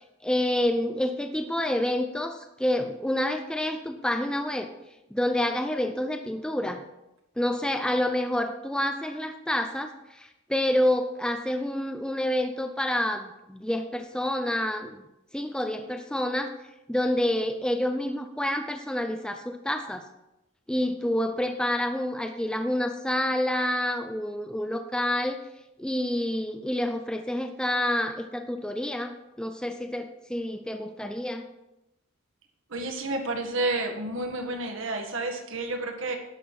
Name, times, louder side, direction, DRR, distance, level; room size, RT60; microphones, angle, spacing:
voice 1, 0.2-4.7 5.1-6.8 7.4-15.1 15.3-16.5 16.9-20.0 20.7-25.4 25.8-31.5, left 1 dB, 5° left, 6 dB, 0.5 m, -28 dB
voice 2, 32.7-36.2, right 2 dB, 65° right, 3 dB, 1.7 m, -30 dB
11.5 x 6.1 x 5.9 m, 0.92 s
head